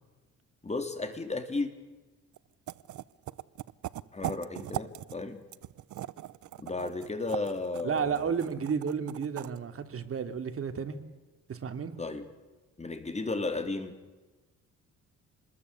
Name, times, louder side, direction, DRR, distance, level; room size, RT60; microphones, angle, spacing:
voice 1, 0.6-1.7 4.1-5.4 6.6-8.3 12.0-12.2 12.8-14.0, left 3 dB, 20° left, 7 dB, 3.5 m, -34 dB
sound 1, 2.3-2.4 2.7-5.2 5.5-9.6, right 14 dB, 75° right, 0.9 m, -39 dB
voice 2, 7.8-11.0 11.5-11.9, right 6 dB, 50° right, 7 dB, 2.9 m, -32 dB
27.5 x 21.0 x 8.4 m, 1.2 s
cardioid pair, 90°, 30 cm